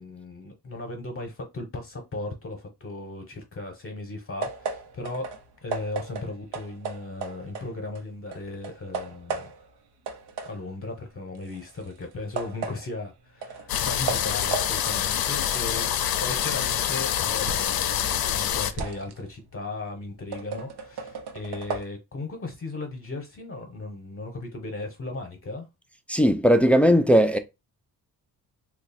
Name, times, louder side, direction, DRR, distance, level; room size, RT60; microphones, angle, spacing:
voice 1, 0.0-5.2 5.6-9.5 10.4-15.9 16.2-25.7, left 2 dB, 35° left, 0.9 m, -36 dB
sound 1, 4.4-8.0 8.3-9.8 10.1-17.8 18.2-21.8, right 4 dB, 85° right, 0.8 m, -36 dB
sound 2, 13.7-18.7, left 10 dB, 70° left, 0.5 m, -26 dB
voice 2, 26.1-27.4, equal, 5° left, 0.3 m, -18 dB
3.0 x 2.4 x 4.1 m
cardioid pair, 130°, 39 cm